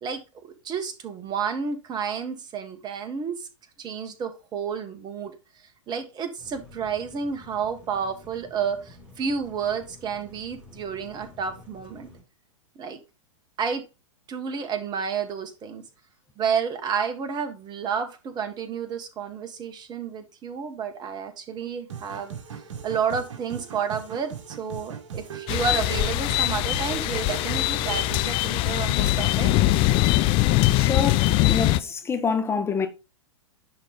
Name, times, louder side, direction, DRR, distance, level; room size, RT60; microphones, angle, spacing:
voice 1, 0.0-3.5 3.8-5.3 5.9-12.1 12.7-13.0 13.6-13.8 14.3-15.8 16.4-22.3 22.8-29.5, right 6 dB, 25° right, 1.4 m, -30 dB
sound 1, 6.4-12.2, left 2 dB, 10° right, 3.5 m, -50 dB
sound 2, 21.9-28.3, right 6 dB, 60° right, 1.6 m, -38 dB
Crickets Rain and Thunder, 25.5-31.8, left 16 dB, 30° left, 0.5 m, -22 dB
voice 2, 30.7-32.9, left 5 dB, 15° left, 1.2 m, -27 dB
10.5 x 3.9 x 3.5 m
figure-of-eight pair, 105°, 17 cm